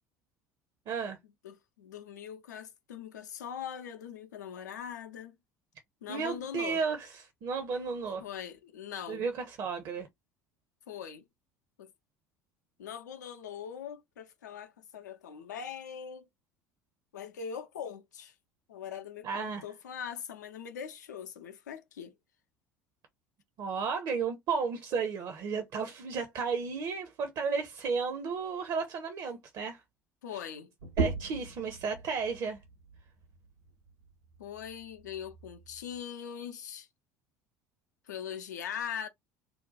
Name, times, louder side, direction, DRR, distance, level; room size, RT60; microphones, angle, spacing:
voice 1, 0.9-1.2 6.1-8.2 9.1-10.1 19.2-19.6 23.6-29.8 31.0-32.6, right 5 dB, 45° right, 0.7 m, -33 dB
voice 2, 1.4-5.3 6.0-6.8 8.2-9.2 10.9-11.2 11.8-11.9 12.8-16.3 17.1-18.3 18.7-22.1 30.2-30.7 34.4-36.9 38.1-39.1, left 8 dB, 75° left, 0.6 m, -41 dB
sound 1, 30.8-36.0, right 3 dB, 80° right, 1.1 m, -39 dB
2.6 x 2.2 x 3.9 m
figure-of-eight pair, 65°, 9 cm